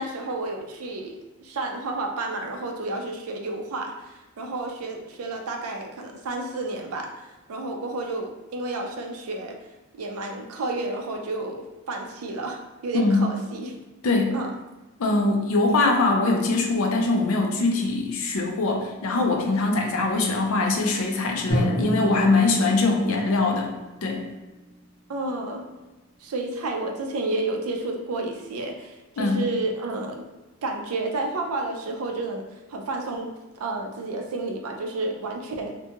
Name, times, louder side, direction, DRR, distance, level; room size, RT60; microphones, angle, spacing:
voice 1, 0.0-9.6 9.9-13.8 14.3-14.5 25.1-25.6 26.2-30.2 30.6-32.4 32.7-33.3 33.6-35.7, right 2 dB, 80° right, 3 dB, 0.4 m, -31 dB
voice 2, 12.9-13.3 14.0-14.4 15.0-23.7 24.0-24.3 29.2-29.4, left 3 dB, 70° left, 2 dB, 0.5 m, -22 dB
Drum, 21.5-25.3, equal, 50° left, 1.0 m, -30 dB
2.6 x 2.2 x 2.8 m, 1.1 s
head